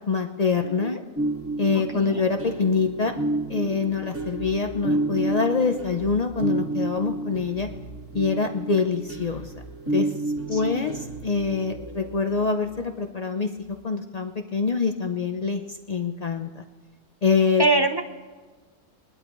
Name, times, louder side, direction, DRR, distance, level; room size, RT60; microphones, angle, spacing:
voice 1, 0.1-1.0 1.6-3.1 3.5-7.7 8.1-9.4 9.9-10.1 10.5-13.5 13.8-15.6 15.9-16.6 17.2-17.6, left 5 dB, 85° left, 5 dB, 0.3 m, -25 dB
voice 2, 0.6-1.0 1.9-2.2 10.5-10.8 17.6-18.0, right 2 dB, 30° right, 5 dB, 0.4 m, -24 dB
sound 1, 1.2-12.8, right 2 dB, 10° right, 1.2 m, -31 dB
21.0 x 12.0 x 3.1 m, 1.4 s
omnidirectional pair, 1.6 m